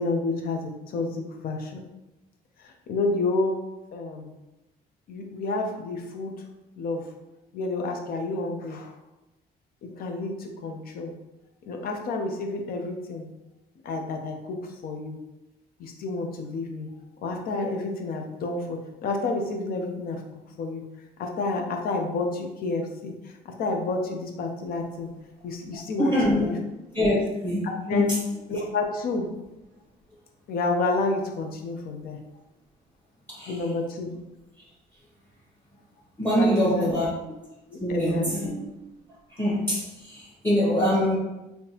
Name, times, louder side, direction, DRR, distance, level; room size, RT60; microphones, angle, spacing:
voice 1, 0.0-1.8 2.6-3.6 3.9-4.3 5.1-6.3 6.8-7.1 7.5-8.9 9.8-11.1 11.7-13.3 13.8-15.2 15.8-16.9 17.2-20.2 20.6-20.8 21.2-23.1 23.5-25.1 25.4-26.5 27.6-28.1 28.5-29.3 30.5-32.2 33.5-34.2 36.3-36.9 37.7-38.5, left 3 dB, 60° left, 3 dB, 0.6 m, -30 dB
voice 2, 26.0-26.5 26.9-28.2 33.3-33.6 36.2-37.1 37.8-38.6 39.3-41.2, equal, 10° left, -6 dB, 1.1 m, -24 dB
3.6 x 2.7 x 2.9 m, 1.0 s
cardioid pair, 110°, 17 cm